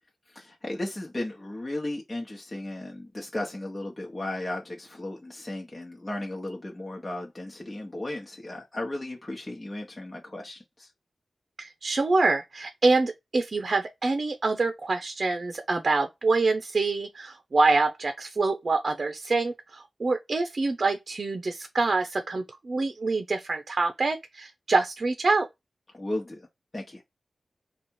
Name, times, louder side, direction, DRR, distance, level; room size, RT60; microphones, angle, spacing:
voice 1, 0.3-10.9 25.9-26.5 26.7-27.0, left 1 dB, 25° left, 1.2 m, -35 dB
voice 2, 11.6-25.5, right 3 dB, 55° right, 0.7 m, -26 dB
4.2 x 2.5 x 4.7 m
wide cardioid pair, 80°, 0 cm